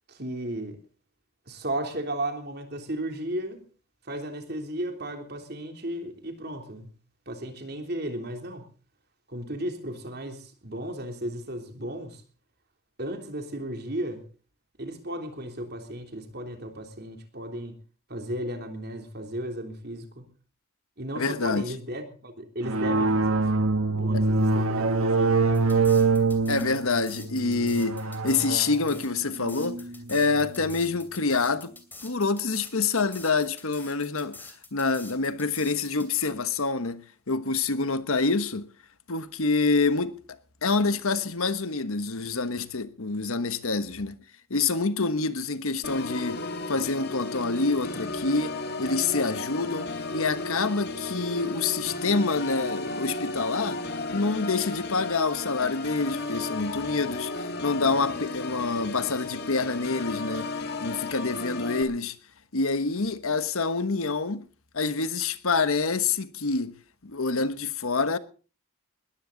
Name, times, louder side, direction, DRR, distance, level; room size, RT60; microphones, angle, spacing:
voice 1, 0.1-0.8 1.5-3.6 4.1-6.9 7.3-8.6 9.3-12.2 13.0-14.2 14.8-17.8 18.1-20.2 21.0-26.2, right 1 dB, 45° right, 3.3 m, -35 dB
voice 2, 21.1-21.7 24.1-24.3 26.5-29.8 30.1-31.7 32.0-34.4 34.7-38.7 39.1-44.2 44.5-48.5 48.8-53.8 54.1-60.5 60.8-62.2 62.5-64.4 64.7-66.8 67.0-68.2, left 4 dB, 80° left, 1.3 m, -27 dB
sound 1, 22.6-30.8, right 3 dB, 80° right, 1.5 m, -25 dB
sound 2, 25.5-36.3, left 3 dB, 10° left, 2.8 m, -46 dB
Organ, 45.8-61.8, left 2 dB, 50° left, 1.8 m, -34 dB
20.5 x 14.5 x 4.0 m
head